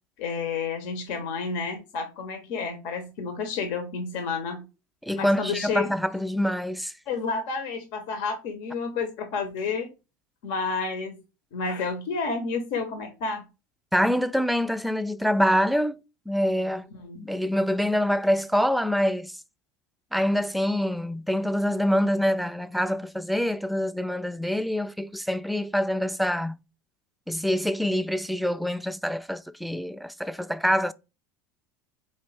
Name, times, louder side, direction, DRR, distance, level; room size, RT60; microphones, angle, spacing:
voice 1, 0.2-4.6 5.1-5.9 7.1-9.9 10.4-11.2 11.5-13.5 16.9-17.2, left 4 dB, 65° left, 1.0 m, -30 dB
voice 2, 5.0-6.9 13.9-16.9 17.2-19.4 20.1-26.6 27.3-30.9, equal, ahead, 0.3 m, -25 dB
4.4 x 3.2 x 3.3 m
hypercardioid pair, 80°, 11 cm